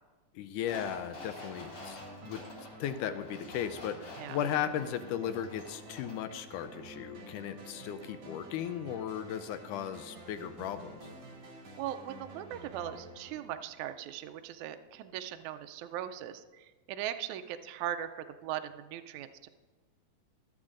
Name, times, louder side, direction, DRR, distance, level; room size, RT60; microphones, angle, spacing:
voice 1, 0.4-2.0 2.2-2.4 2.8-11.1, left 9 dB, 80° left, 10 dB, 1.9 m, -36 dB
sound 1, 0.6-6.3 6.6-6.7, left 2 dB, 45° left, 3.1 m, -49 dB
sound 2, 0.7-14.3, right 1 dB, 55° right, 3.2 m, -50 dB
voice 2, 11.8-19.5, right 11 dB, 80° right, 8 dB, 1.7 m, -39 dB
23.0 x 8.0 x 2.5 m, 1.3 s
omnidirectional pair, 3.8 m